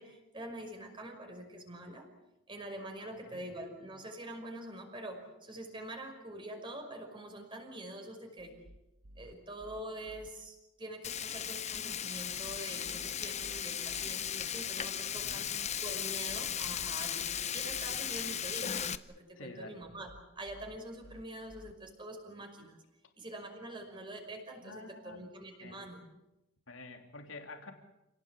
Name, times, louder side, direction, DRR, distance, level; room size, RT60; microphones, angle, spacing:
voice 1, 0.0-2.1 2.5-8.6 9.2-15.5 15.8-20.1 20.4-22.8 23.2-26.0, right 1 dB, 25° right, 3 dB, 5.6 m, -45 dB
voice 2, 3.0-3.4 15.1-15.5 19.4-19.8 24.6-25.3 25.6-25.8 26.7-27.7, left 2 dB, 65° left, 4 dB, 3.3 m, -48 dB
sound 1, 8.4-10.3 12.2-14.1 16.0-17.9 19.8-21.7, equal, 80° right, 1.5 m, -57 dB
Frying (food), 11.0-19.0, left 9 dB, 35° left, 0.8 m, -36 dB
29.0 x 18.0 x 8.4 m, 0.93 s
head